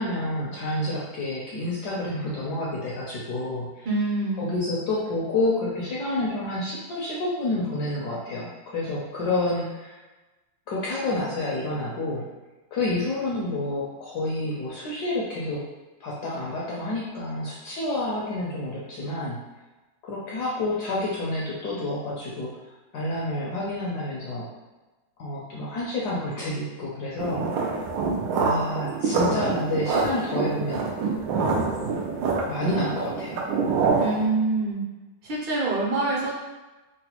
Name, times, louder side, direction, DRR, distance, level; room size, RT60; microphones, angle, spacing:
voice 1, 0.0-3.9 4.4-10.0 10.7-12.3 12.7-15.6 16.0-19.4 20.0-22.6 22.9-24.5 25.2-27.5 28.3-30.9 31.3-31.9 32.5-33.5, left 2 dB, 70° left, -5 dB, 1.0 m, -29 dB
voice 2, 3.8-4.5 34.0-34.8 35.2-36.3, right 2 dB, 70° right, -4 dB, 1.5 m, -25 dB
sound 1, 27.2-34.3, right 4 dB, 85° right, 1.4 m, -26 dB
3.9 x 2.1 x 2.8 m, 1.1 s
omnidirectional pair, 2.3 m